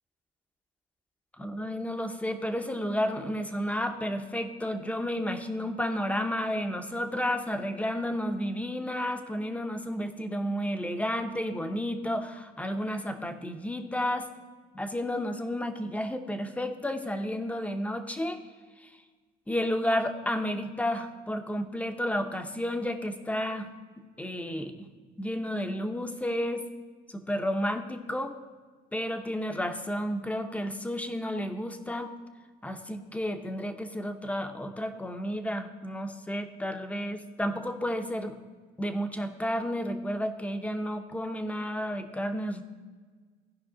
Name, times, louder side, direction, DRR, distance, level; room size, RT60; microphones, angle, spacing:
voice 1, 1.4-14.3 14.7-18.4 18.8-18.9 19.5-23.7 24.2-24.9 25.2-26.6 27.1-28.3 28.9-32.1 32.6-38.3 38.8-42.6, equal, 10° left, 7 dB, 0.8 m, -31 dB
15.5 x 5.3 x 3.8 m, 1.5 s
cardioid pair, 110°, 17 cm